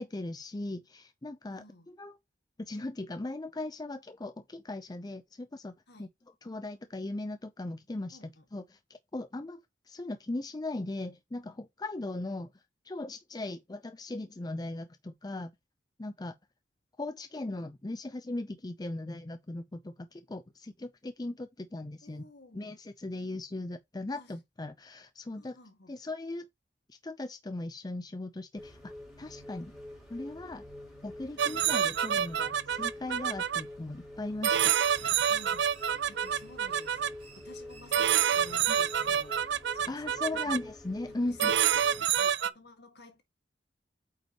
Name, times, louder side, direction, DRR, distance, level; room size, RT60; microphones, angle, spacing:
voice 1, 0.0-1.6 2.0-2.2 2.6-5.7 6.0-6.1 6.4-8.2 8.5-8.6 9.1-9.6 9.9-12.5 12.9-15.5 16.0-16.3 17.0-22.2 22.5-25.6 25.9-26.5 26.9-29.7 30.1-30.6 31.0-35.1 39.9-41.5, left 2 dB, 20° left, 0.5 m, -38 dB
voice 2, 1.5-1.9 5.9-6.1 8.1-8.5 22.0-22.7 24.1-24.4 25.4-25.9 35.3-35.7 36.1-39.4 39.7-40.6 41.1-43.2, left 2 dB, 60° left, 1.9 m, -54 dB
sound 1, 28.6-42.0, left 1 dB, ahead, 3.0 m, -47 dB
sound 2, 31.4-33.6 34.4-37.1 37.9-40.6 41.4-42.5, right 9 dB, 65° right, 0.5 m, -27 dB
sound 3, 34.7-39.3, right 4 dB, 30° right, 2.4 m, -58 dB
8.6 x 5.3 x 3.0 m
head